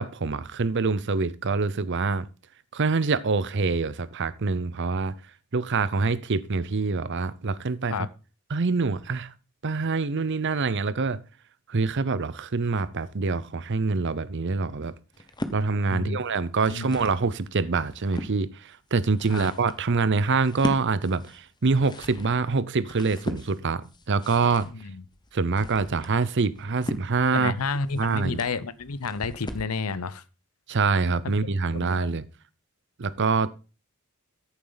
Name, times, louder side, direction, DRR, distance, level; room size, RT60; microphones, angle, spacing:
voice 1, 0.0-2.3 2.7-5.1 5.5-8.0 8.5-9.3 9.6-11.2 11.7-14.9 15.5-24.7 25.3-27.5 28.0-28.4 30.7-32.3 33.0-33.5, right 4 dB, 55° right, 0.7 m, -25 dB
sound 1, 15.1-15.6 16.4-17.2 17.7-18.3 18.9-29.8, left 1 dB, 20° left, 1.0 m, -38 dB
voice 2, 27.3-30.2 31.2-31.3 31.7-32.1, left 4 dB, 90° left, 0.8 m, -30 dB
14.0 x 7.3 x 4.0 m
head